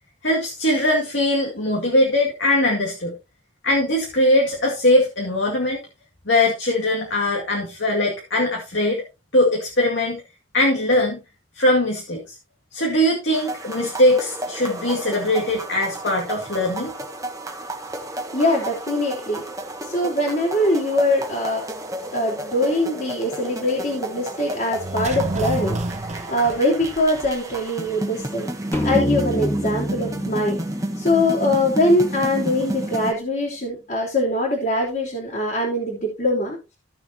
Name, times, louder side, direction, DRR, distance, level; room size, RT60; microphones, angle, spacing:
voice 1, 0.2-3.2 3.6-5.8 6.3-9.0 9.3-10.2 10.5-11.2 11.6-12.4 12.7-16.9, left 1 dB, 65° left, -2 dB, 2.2 m, -21 dB
sound 1, 13.3-33.1, right 1 dB, 15° right, 1.2 m, -32 dB
voice 2, 18.3-19.4 19.8-21.6 22.1-28.5 28.8-30.6 31.0-36.6, left 1 dB, 45° left, -6 dB, 3.1 m, -22 dB
sound 2, 24.7-27.6 27.9-28.0, right 2 dB, 35° right, 0.8 m, -29 dB
sound 3, 28.7-32.2, equal, 10° left, 2.1 m, -27 dB
15.5 x 6.8 x 2.8 m, 0.27 s
head